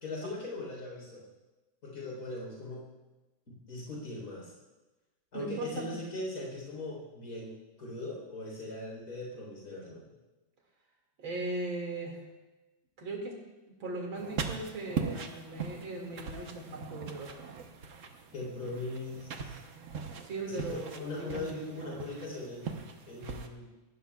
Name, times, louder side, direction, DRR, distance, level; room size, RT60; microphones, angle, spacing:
voice 1, 0.0-1.2 1.8-2.8 3.7-4.5 5.3-10.1 18.3-19.6 20.4-22.7 23.1-23.7, left 2 dB, 50° left, -3 dB, 4.5 m, -40 dB
voice 2, 5.3-5.9 11.2-12.2 13.0-13.4 13.7-17.3 20.2-21.4, right 2 dB, 85° right, 0 dB, 3.0 m, -38 dB
sound 1, 14.2-23.5, right 5 dB, 50° right, 1.1 m, -40 dB
18.5 x 15.0 x 2.4 m, 1.1 s
omnidirectional pair, 2.1 m